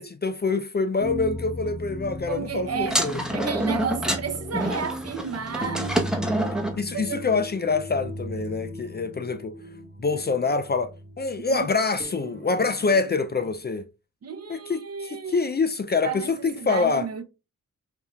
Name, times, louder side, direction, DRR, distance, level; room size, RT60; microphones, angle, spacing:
voice 1, 0.0-3.5 6.8-9.5 10.0-13.9 14.5-17.1, left 4 dB, 30° left, 0.4 m, -26 dB
sound 1, 1.0-13.5, equal, 30° right, 1.0 m, -38 dB
voice 2, 2.3-3.0 3.3-6.0 6.9-7.3 11.4-11.6 14.2-15.5 16.0-17.2, right 6 dB, 50° right, 0.7 m, -32 dB
sound 2, 2.8-6.8, right 1 dB, ahead, 0.9 m, -27 dB
5.2 x 2.7 x 2.3 m
cardioid pair, 60°, 32 cm